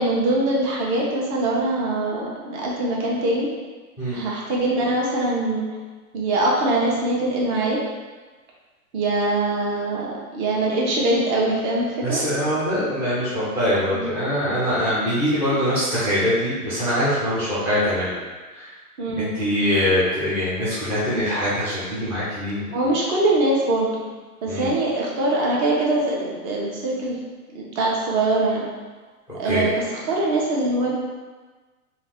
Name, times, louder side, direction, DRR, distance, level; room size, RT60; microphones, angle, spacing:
voice 1, 0.0-3.5 4.1-5.7 6.1-7.8 8.9-12.2 13.9-14.1 19.0-19.3 22.7-24.0 24.4-27.2 27.5-28.7 29.3-30.9, right 2 dB, 50° right, -4 dB, 1.2 m, -23 dB
voice 2, 12.0-18.2 18.5-18.7 19.2-22.7 24.5-24.7 29.4-29.7, equal, 5° right, -12 dB, 0.3 m, -23 dB
3.8 x 2.5 x 3.6 m, 1.3 s
hypercardioid pair, 125°, 45 cm